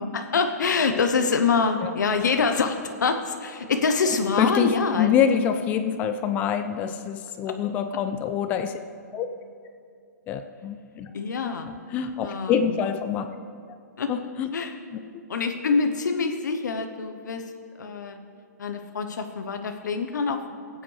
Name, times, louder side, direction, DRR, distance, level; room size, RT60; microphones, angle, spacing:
voice 1, 0.0-5.1 7.4-7.5 11.1-11.7 12.2-12.8 14.0-14.1 14.5-14.7 15.3-17.4 17.8-18.2 18.6-20.4, left 5 dB, 80° left, 6 dB, 0.9 m, -25 dB
voice 2, 4.4-8.8 9.1-9.3 10.3-11.1 11.4-13.4 14.1-14.5 14.9-15.2, left 8 dB, 15° left, 8 dB, 0.3 m, -26 dB
16.5 x 8.7 x 3.3 m, 2.4 s
hypercardioid pair, 160°, 10 cm